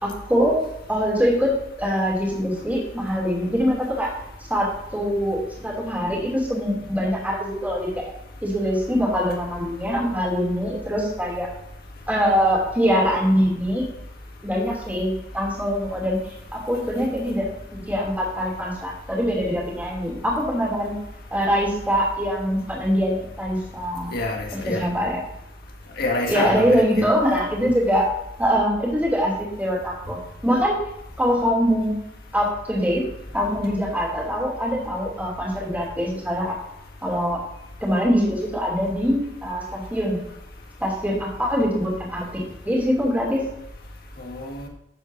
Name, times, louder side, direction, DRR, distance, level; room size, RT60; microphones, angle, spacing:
voice 1, 0.0-0.6 0.9-1.5 1.8-4.1 4.5-7.9 8.4-11.5 12.1-13.9 14.4-16.2 16.5-17.4 17.7-21.0 21.3-24.1 24.5-25.2 26.3-28.1 28.4-30.8 31.2-31.9 32.3-33.0 33.3-36.6 37.0-37.4 37.8-40.2 40.8-43.4, equal, 10° right, -4 dB, 2.8 m, -23 dB
voice 2, 24.1-24.9 26.0-27.1 44.2-44.7, left 2 dB, 55° left, 1 dB, 1.7 m, -27 dB
12.5 x 7.9 x 2.7 m, 0.82 s
head